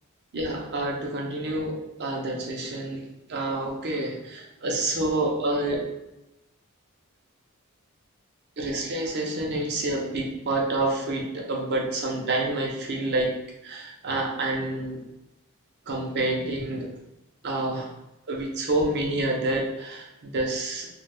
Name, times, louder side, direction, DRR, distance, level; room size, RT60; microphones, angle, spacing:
voice 1, 0.3-3.0 3.3-5.8 8.6-13.3 13.6-15.0 15.9-16.9 17.4-17.9 18.3-20.9, right 2 dB, 55° right, 0 dB, 0.6 m, -28 dB
2.4 x 2.4 x 3.3 m, 0.92 s
head